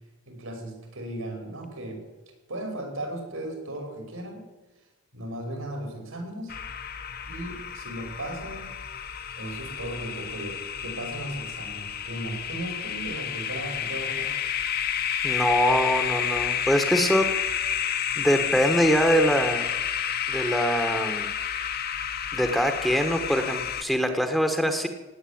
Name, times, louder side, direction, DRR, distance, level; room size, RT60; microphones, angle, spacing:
voice 1, 0.3-2.0 2.5-4.4 5.1-6.6 7.3-8.7 9.4-14.3, right 1 dB, 75° right, 3 dB, 5.9 m, -36 dB
sound 1, 6.5-23.8, left 8 dB, 45° left, 1.1 m, -30 dB
voice 2, 15.2-17.3 18.2-19.7 20.3-21.3 22.3-24.9, equal, ahead, 6 dB, 1.2 m, -23 dB
17.5 x 9.6 x 8.6 m, 1.2 s
head